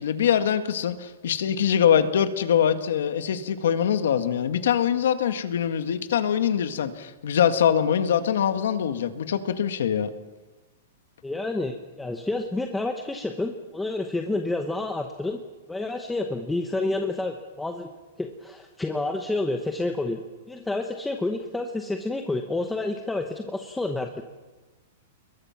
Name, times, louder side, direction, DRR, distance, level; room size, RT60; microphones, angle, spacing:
voice 1, 0.0-10.1, left 8 dB, 70° left, 9 dB, 1.8 m, -23 dB
voice 2, 11.2-15.4 15.7-17.9 18.2-24.2, left 2 dB, 5° left, 4 dB, 0.9 m, -29 dB
29.5 x 22.0 x 5.9 m, 1.2 s
supercardioid pair, 175°, 0 cm